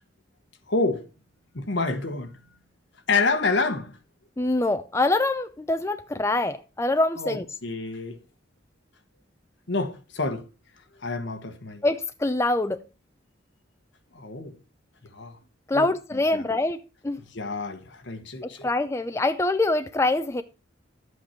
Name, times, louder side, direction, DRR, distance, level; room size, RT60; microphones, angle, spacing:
voice 1, 0.7-1.1 1.5-2.4 3.1-3.9 7.2-8.2 9.7-10.5 11.0-11.8 14.1-14.5 15.1-15.4 15.7-15.9 16.1-16.5 17.2-18.7, left 3 dB, 65° left, 1.4 m, -28 dB
voice 2, 4.4-7.4 11.8-12.8 15.7-17.2 18.4-20.4, left 2 dB, 15° left, 0.5 m, -25 dB
11.5 x 8.1 x 4.5 m
head